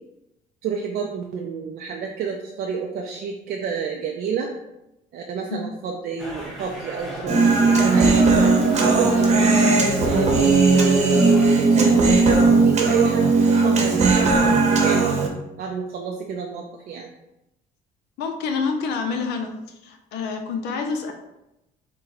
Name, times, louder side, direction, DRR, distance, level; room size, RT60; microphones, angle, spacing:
voice 1, 0.6-4.5 5.1-9.3 10.0-15.1 15.6-17.1, right 6 dB, 60° right, 1 dB, 0.5 m, -29 dB
sound 1, 6.2-11.5, equal, ahead, 1.1 m, -35 dB
Human voice, 7.3-15.3, right 3 dB, 40° right, 0.9 m, -17 dB
voice 2, 18.2-19.5 19.8-21.1, left 5 dB, 80° left, 5 dB, 0.6 m, -27 dB
4.3 x 2.2 x 4.0 m, 0.90 s
cardioid pair, 110°, 17 cm